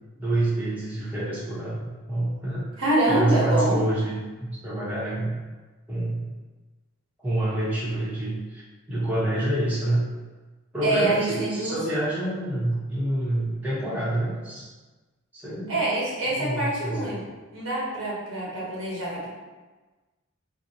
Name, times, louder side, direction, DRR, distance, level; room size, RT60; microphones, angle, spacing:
voice 1, 0.2-2.7 3.1-5.4 5.9-6.3 7.2-8.6 8.9-10.0 10.7-14.7 15.3-15.8 16.4-17.1, right 1 dB, 10° right, -10 dB, 0.8 m, -27 dB
voice 2, 2.8-3.8 10.8-11.8 15.7-17.2 17.5-19.3, right 2 dB, 80° right, -6 dB, 1.1 m, -25 dB
2.7 x 2.1 x 4.0 m, 1.2 s
head